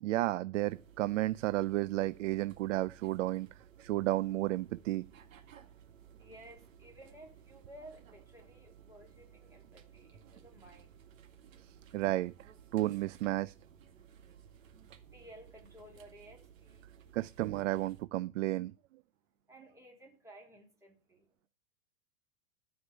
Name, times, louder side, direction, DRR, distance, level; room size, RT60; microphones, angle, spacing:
voice 1, 0.0-3.5 3.8-5.1 11.9-12.3 12.7-13.5 17.1-18.7, right 16 dB, 70° right, 0.5 m, -32 dB
sound 1, 0.5-18.0, right 8 dB, 85° right, 2.1 m, -58 dB
voice 2, 5.9-12.0 13.9-17.2 19.1-21.5, right 1 dB, 10° right, 3.3 m, -57 dB
14.0 x 5.2 x 7.2 m
supercardioid pair, 155°, 39 cm